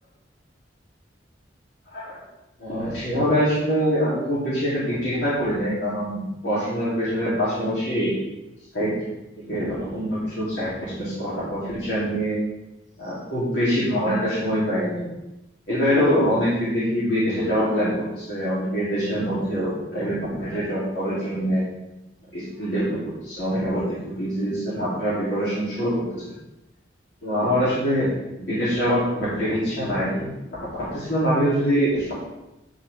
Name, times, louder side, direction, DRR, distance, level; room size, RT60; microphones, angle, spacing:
voice 1, 2.6-8.2 8.7-8.9 9.4-12.4 13.0-15.1 15.7-21.6 22.3-23.0 23.2-26.2 27.2-28.1 28.4-30.3 30.6-30.7 30.9-32.1, equal, 70° left, -11 dB, 3.0 m, -24 dB
10.5 x 5.6 x 3.5 m, 0.94 s
head